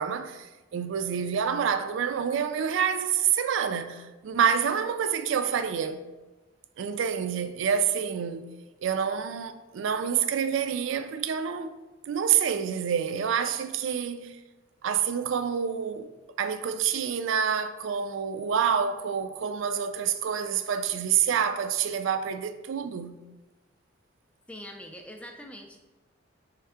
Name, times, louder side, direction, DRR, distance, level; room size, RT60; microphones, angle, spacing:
voice 1, 0.0-6.0 6.8-8.5 8.8-11.8 12.1-14.4 14.8-16.1 16.4-23.2, right 7 dB, 75° right, 0.3 m, -27 dB
voice 2, 24.5-25.8, equal, 5° left, 0.3 m, -43 dB
4.5 x 3.4 x 3.4 m
head